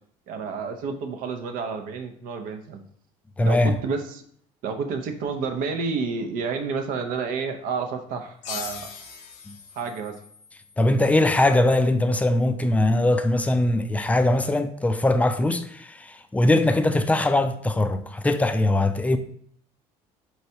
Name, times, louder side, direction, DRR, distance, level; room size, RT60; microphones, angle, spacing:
voice 1, 0.3-2.8 3.4-4.2 4.6-8.9 9.8-10.2, right 5 dB, 70° right, 0.6 m, -30 dB
voice 2, 3.4-3.8 9.5-9.6 10.8-19.2, left 1 dB, 10° left, 0.3 m, -21 dB
sound 1, 8.4-11.7, left 7 dB, 90° left, 0.5 m, -41 dB
4.4 x 3.2 x 2.7 m
supercardioid pair, 90°, 15 cm